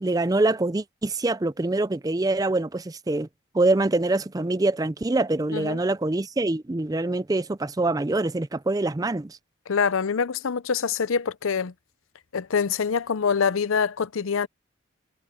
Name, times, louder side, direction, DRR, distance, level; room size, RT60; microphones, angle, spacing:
voice 1, 0.0-3.3 3.5-9.4, right 2 dB, 20° right, 0.4 m, -24 dB
voice 2, 9.7-11.7 12.3-14.5, left 6 dB, 85° left, 0.6 m, -25 dB
head